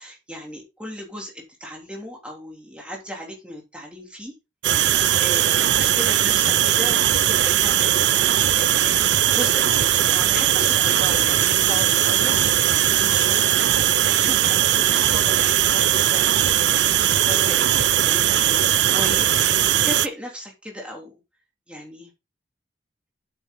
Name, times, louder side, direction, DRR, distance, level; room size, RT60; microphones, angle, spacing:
voice 1, 0.0-4.3 5.2-13.5 14.1-19.4 19.8-21.1 21.7-22.1, equal, 5° right, -1 dB, 3.3 m, -36 dB
sound 1, 4.6-20.1, right 11 dB, 75° right, 0.5 m, -19 dB
8.4 x 7.2 x 3.9 m, 0.27 s
head